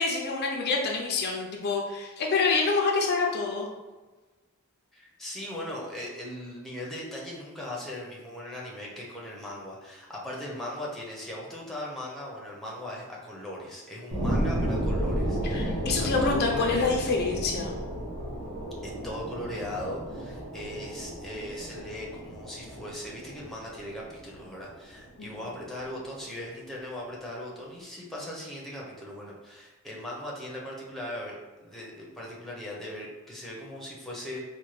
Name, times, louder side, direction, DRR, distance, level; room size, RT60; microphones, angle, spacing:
voice 1, 0.0-3.7 15.5-17.8 25.2-25.5, left 4 dB, 45° left, 0 dB, 0.4 m, -27 dB
voice 2, 4.9-17.0 18.8-34.5, left 1 dB, ahead, -4 dB, 0.6 m, -39 dB
sound 1, 14.1-25.1 25.6-25.7, right 1 dB, 85° right, 1.3 m, -33 dB
4.2 x 2.2 x 3.1 m, 1.2 s
head